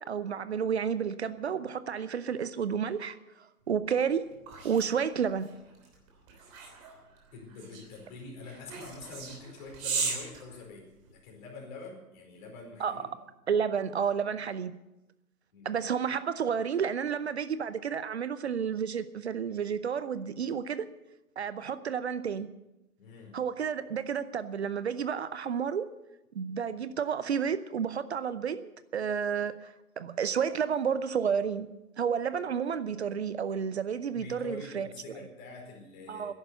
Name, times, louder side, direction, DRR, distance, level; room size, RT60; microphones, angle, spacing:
voice 1, 0.1-4.3 4.6-5.5 12.8-13.0 13.5-14.7 15.6-20.9 21.4-22.5 23.3-25.9 26.3-31.7 32.0-34.9 36.1-36.3, right 7 dB, 45° right, 14 dB, 0.8 m, -31 dB
sound 1, 3.8-11.3, right 5 dB, 25° right, 3.3 m, -39 dB
voice 2, 7.3-13.0 15.5-15.7 23.0-23.4 34.1-36.3, left 3 dB, 30° left, 0 dB, 4.8 m, -46 dB
14.0 x 11.0 x 8.1 m, 0.96 s
figure-of-eight pair, 125°, 44 cm